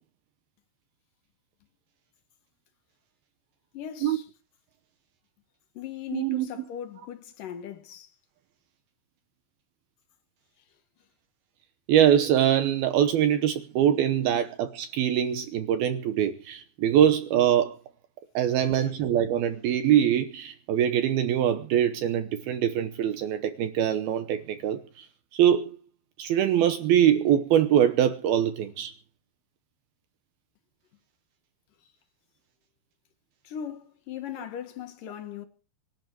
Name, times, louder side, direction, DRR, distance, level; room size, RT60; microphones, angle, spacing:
voice 1, 3.7-4.3 5.7-8.1 18.5-18.9 33.4-35.5, left 9 dB, 60° left, 2.6 m, -39 dB
voice 2, 6.1-6.7 11.9-17.7 18.3-25.1 25.3-25.8 26.2-28.9, right 10 dB, 75° right, 2.5 m, -23 dB
24.5 x 11.0 x 4.6 m
omnidirectional pair, 5.2 m